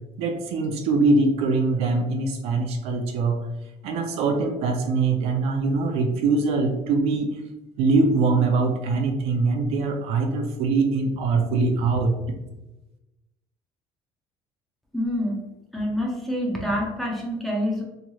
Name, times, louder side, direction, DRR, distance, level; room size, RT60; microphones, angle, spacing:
voice 1, 0.2-3.5 3.8-7.4 7.8-12.2, right 3 dB, 60° right, 5 dB, 0.4 m, -23 dB
voice 2, 14.9-15.4 15.7-17.8, equal, ahead, -2 dB, 0.5 m, -26 dB
3.1 x 2.8 x 2.2 m, 1.0 s
cardioid pair, 160°, 12 cm